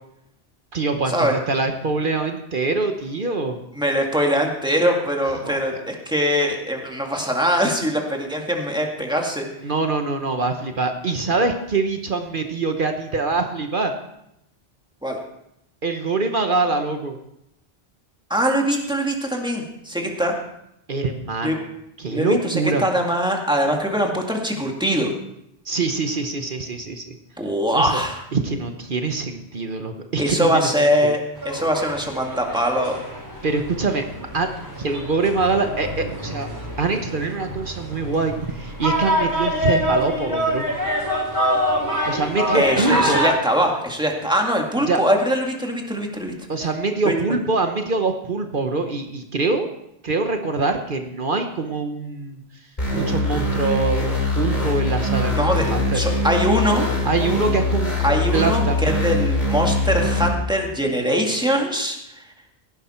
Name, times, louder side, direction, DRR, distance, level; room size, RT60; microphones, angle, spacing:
voice 1, 0.7-3.6 5.4-5.8 9.6-13.9 15.8-17.2 20.9-21.6 22.0-22.9 25.6-27.2 27.7-28.0 28.3-30.7 31.0-31.1 33.4-34.5 34.8-36.5 36.8-40.6 42.0-43.2 44.9-45.0 46.5-49.7 50.0-52.4 52.9-54.1 54.3-55.4 55.7-56.2 57.0-59.0, right 3 dB, 55° right, 5 dB, 1.2 m, -24 dB
voice 2, 3.8-9.5 15.0-15.2 18.3-20.4 21.4-21.6 22.1-25.1 27.4-28.2 30.2-33.0 42.5-46.3 47.1-47.2 55.3-56.9 58.0-62.2, equal, 5° right, 1 dB, 2.0 m, -22 dB
sound 1, 31.4-43.3, equal, 20° right, 6.0 m, -25 dB
sound 2, 52.8-60.3, left 2 dB, 40° left, 3.3 m, -22 dB
16.5 x 11.0 x 4.4 m, 0.80 s
omnidirectional pair, 1.1 m